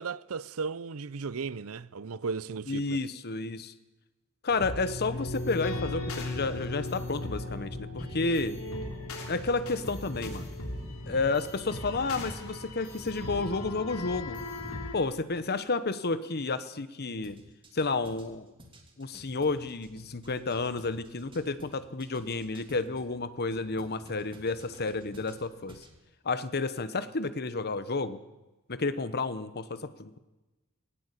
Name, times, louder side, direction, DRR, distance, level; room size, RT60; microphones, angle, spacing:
voice 1, 0.0-3.0, right 5 dB, 80° right, 0.6 m, -35 dB
voice 2, 2.7-3.7 4.4-8.6 9.3-10.5 11.1-14.4 14.9-17.4 17.7-18.5 19.0-25.8 26.2-28.2 28.7-30.2, left 3 dB, 50° left, 1.1 m, -31 dB
sound 1, 4.5-15.6, equal, 5° right, 0.9 m, -45 dB
sound 2, 4.6-15.0, left 2 dB, 85° left, 3.3 m, -38 dB
sound 3, 17.2-23.1 23.5-26.0, right 1 dB, 25° right, 2.9 m, -54 dB
18.0 x 18.0 x 8.3 m
head